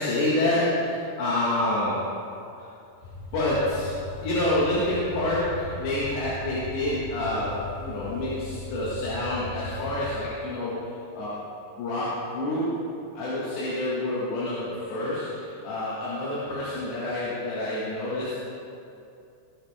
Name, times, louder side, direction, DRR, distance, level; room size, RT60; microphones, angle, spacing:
voice 1, 0.0-2.1 2.6-2.7 3.3-11.4 11.8-12.9 13.2-18.4, left 1 dB, 75° left, -9 dB, 4.0 m, -28 dB
sound 1, 3.0-10.2, left 2 dB, 50° left, 3.3 m, -38 dB
20.0 x 7.5 x 3.6 m, 2.6 s
omnidirectional pair, 5.1 m